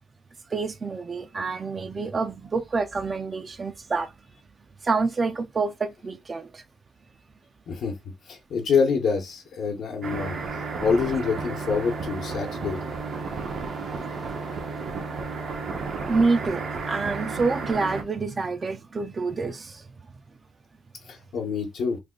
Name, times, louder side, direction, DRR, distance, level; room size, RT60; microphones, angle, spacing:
voice 1, 0.5-4.1 4.8-6.6 16.1-19.9, right 4 dB, 35° right, 0.5 m, -27 dB
voice 2, 7.7-8.0 8.3-10.3 10.8-12.8 21.1-22.0, left 5 dB, 75° left, 1.0 m, -26 dB
sound 1, 10.0-18.0, right 4 dB, 60° right, 0.8 m, -32 dB
3.3 x 2.1 x 3.7 m
cardioid pair, 110°, 0 cm